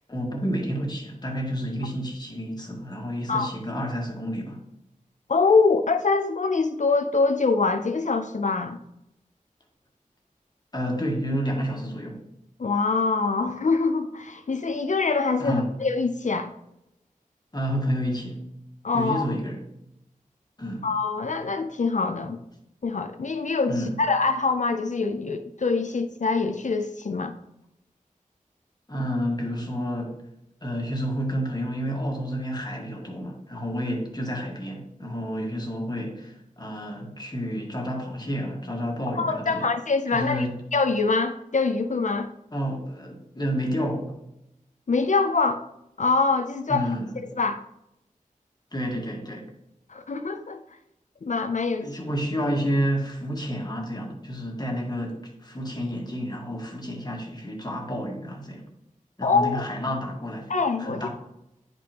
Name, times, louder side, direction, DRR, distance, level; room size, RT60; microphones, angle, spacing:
voice 1, 0.1-4.6 10.7-12.2 15.4-15.7 17.5-18.4 18.9-19.6 20.6-20.9 23.7-24.0 28.9-30.1 30.6-39.7 40.1-40.6 42.5-44.1 46.7-47.2 48.7-49.5 51.8-58.7 59.2-60.5 60.8-61.1, equal, 30° left, 1.6 m, -30 dB
voice 2, 5.3-8.8 12.6-16.5 18.8-19.2 20.8-22.4 22.8-27.3 39.2-40.5 40.7-42.3 44.9-45.7 46.0-46.9 47.4-47.6 49.9-50.6 51.2-51.9 59.2-59.6 60.5-61.1, left 4 dB, 60° left, 0.6 m, -24 dB
10.0 x 5.1 x 2.9 m
wide cardioid pair, 70°, 14 cm